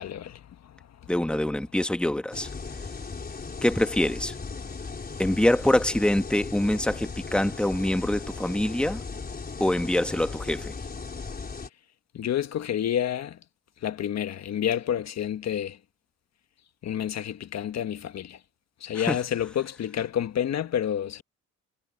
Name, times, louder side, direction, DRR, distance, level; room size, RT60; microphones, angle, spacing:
voice 1, 0.0-1.1 12.1-13.4 13.8-15.8 16.8-18.4 18.8-21.2, left 10 dB, 60° left, 1.4 m, -29 dB
voice 2, 1.1-2.5 3.6-4.3 5.2-9.0 9.6-10.8 18.9-19.2, left 1 dB, 5° left, 1.5 m, -25 dB
sound 1, 2.3-11.7, left 4 dB, 30° left, 4.5 m, -37 dB
cardioid pair, 90°, 30 cm